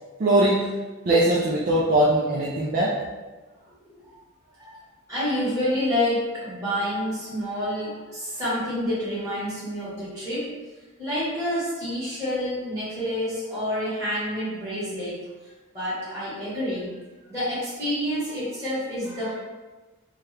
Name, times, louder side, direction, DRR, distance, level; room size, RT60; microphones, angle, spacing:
voice 1, 0.2-0.7 1.1-2.9, right 1 dB, 40° right, -6 dB, 0.4 m, -21 dB
voice 2, 3.7-4.2 4.5-4.8 5.1-10.5 11.0-16.9 17.2-19.4, left 1 dB, 15° right, -12 dB, 1.5 m, -28 dB
2.8 x 2.3 x 3.2 m, 1.2 s
head